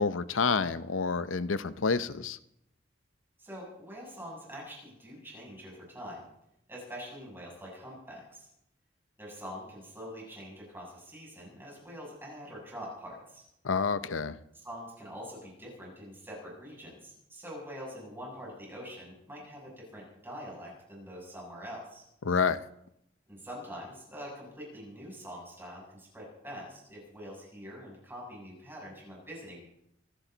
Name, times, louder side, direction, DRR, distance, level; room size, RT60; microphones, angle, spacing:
voice 1, 0.0-2.4 13.6-14.4 22.2-22.6, left 5 dB, 90° left, 14 dB, 0.7 m, -28 dB
voice 2, 3.4-6.2 6.7-8.5 9.2-13.4 14.6-22.0 23.3-29.6, equal, 10° right, -4 dB, 7.4 m, -44 dB
26.0 x 12.0 x 4.0 m, 0.80 s
head